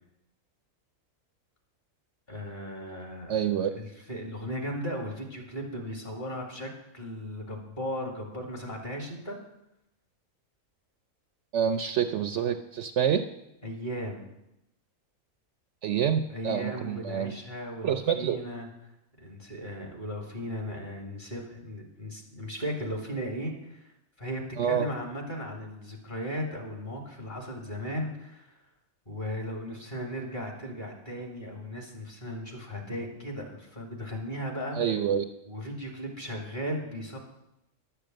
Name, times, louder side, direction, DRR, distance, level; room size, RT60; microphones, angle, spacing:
voice 1, 2.3-9.4 13.6-14.3 16.3-18.7 19.2-23.9 24.2-28.6 29.1-34.8 35.4-37.2, equal, 35° left, 1 dB, 2.3 m, -36 dB
voice 2, 3.3-3.7 11.5-13.2 15.8-17.3 17.8-18.4 24.6-24.9 34.7-35.2, right 8 dB, 65° right, 8 dB, 0.8 m, -27 dB
11.5 x 6.8 x 7.6 m, 0.88 s
omnidirectional pair, 1.5 m